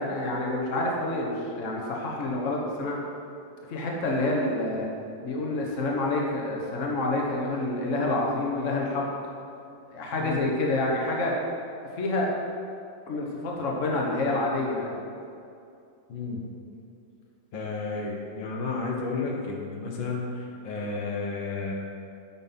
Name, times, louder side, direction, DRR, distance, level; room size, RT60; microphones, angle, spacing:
voice 1, 0.0-2.9 3.7-4.9 5.2-9.0 9.9-11.3 11.8-12.3 13.1-15.0, left 2 dB, 45° left, -1 dB, 1.5 m, -28 dB
voice 2, 16.1-16.4 17.5-21.7, left 4 dB, 85° left, -1 dB, 1.9 m, -32 dB
8.2 x 6.1 x 5.6 m, 2.5 s
omnidirectional pair, 2.0 m